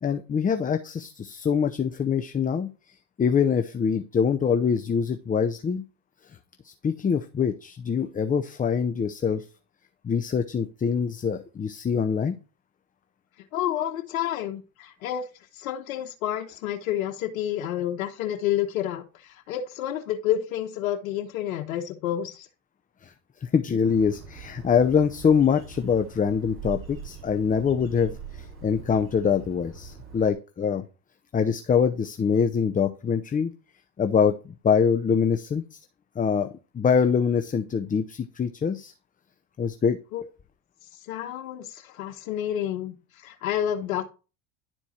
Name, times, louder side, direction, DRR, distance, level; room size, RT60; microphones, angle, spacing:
voice 1, 0.0-5.8 6.6-9.5 10.0-12.4 23.0-23.1 23.4-30.8 31.3-33.5 34.0-34.4 34.6-35.8 36.2-36.5 36.7-38.9 39.6-40.0, left 6 dB, 20° left, 8 dB, 0.7 m, -24 dB
voice 2, 13.5-15.3 15.5-22.5 40.1-40.2 41.1-44.0, left 11 dB, 80° left, 2 dB, 1.3 m, -29 dB
Bird, 23.8-30.3, right 6 dB, 30° right, 4.7 m, -42 dB
11.5 x 4.5 x 4.3 m, 0.32 s
supercardioid pair, 90°, 41 cm